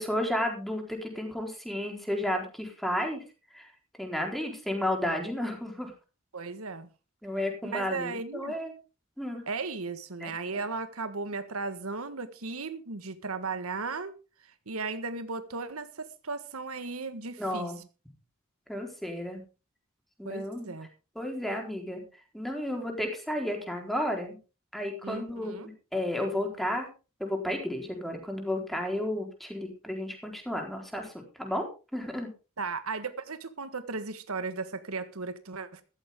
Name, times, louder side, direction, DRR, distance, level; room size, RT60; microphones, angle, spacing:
voice 1, 0.0-3.2 3.5-3.7 4.0-5.9 7.2-8.7 9.2-9.4 10.2-10.3 17.4-17.8 18.7-19.4 20.2-20.7 21.2-22.0 22.3-24.4 24.7-26.9 27.2-31.1 31.4-31.6 31.9-32.3, left 1 dB, ahead, 2 dB, 4.1 m, -32 dB
voice 2, 6.3-6.9 7.7-8.5 9.5-14.1 14.4-17.7 20.2-20.9 25.0-25.7 32.6-35.8, right 4 dB, 85° right, 11 dB, 1.5 m, -36 dB
14.5 x 14.0 x 3.7 m, 0.32 s
head